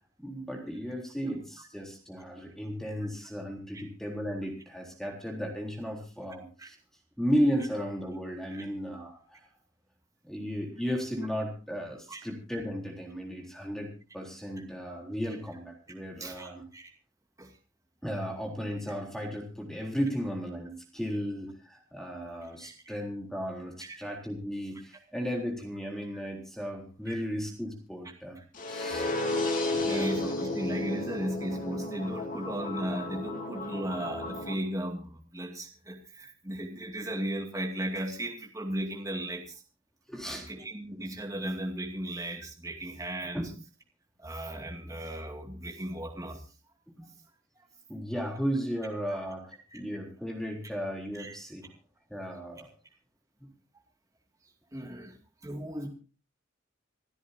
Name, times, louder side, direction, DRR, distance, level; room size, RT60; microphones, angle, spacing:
voice 1, 0.2-6.8 7.2-9.5 10.2-16.6 18.0-28.4 28.7-29.1 29.7-30.1 40.1-40.6 43.3-43.5 47.0-47.1 47.9-51.7 52.1-52.7, equal, ahead, 0 dB, 3.8 m, -35 dB
voice 2, 16.2-16.9 17.4-17.5 22.6-22.7 23.8-24.0 27.1-27.2 28.9-29.0 29.3-29.4 29.8-39.6 40.3-43.4 44.2-46.4 49.7-49.8 51.2-51.3 54.7-55.2 55.4-55.9, right 1 dB, 15° right, 1 dB, 2.4 m, -36 dB
sound 1, 28.5-34.5, left 2 dB, 45° left, 2.8 m, -33 dB
27.5 x 13.0 x 2.8 m, 0.35 s
head